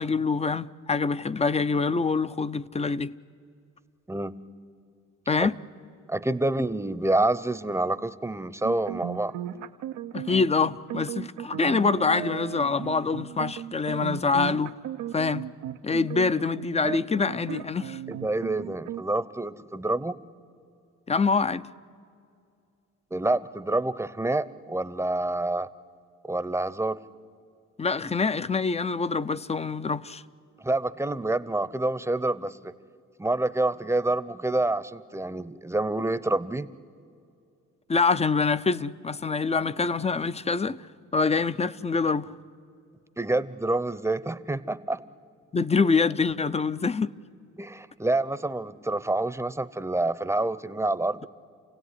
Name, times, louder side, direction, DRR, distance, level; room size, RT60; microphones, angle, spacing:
voice 1, 0.0-3.1 5.3-5.6 10.1-14.8 15.1-15.5 15.8-18.0 21.1-21.7 27.8-30.2 37.9-40.9 41.1-42.3 45.5-47.1, left 4 dB, 20° left, 0.6 m, -25 dB
voice 2, 6.1-9.3 18.1-20.2 23.1-25.7 26.2-27.0 30.6-32.7 33.2-36.7 43.2-45.0 47.6-51.3, right 2 dB, 10° right, 0.8 m, -27 dB
sound 1, 8.6-19.0, right 11 dB, 90° right, 0.8 m, -36 dB
29.0 x 16.5 x 9.8 m
cardioid pair, 90°, 30 cm